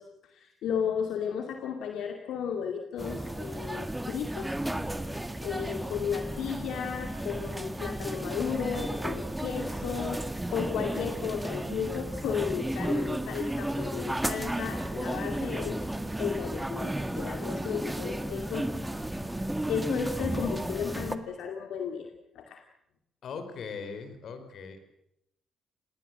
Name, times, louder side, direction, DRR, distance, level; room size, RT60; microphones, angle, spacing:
voice 1, 0.0-4.7 5.4-15.8 16.2-18.7 19.7-22.6, left 7 dB, 80° left, 4 dB, 2.4 m, -34 dB
sound 1, 3.0-21.2, right 1 dB, 10° right, 1.9 m, -33 dB
voice 2, 23.2-25.0, left 5 dB, 65° left, 9 dB, 4.9 m, -40 dB
28.0 x 19.5 x 7.7 m, 0.80 s
cardioid pair, 95°, 0 cm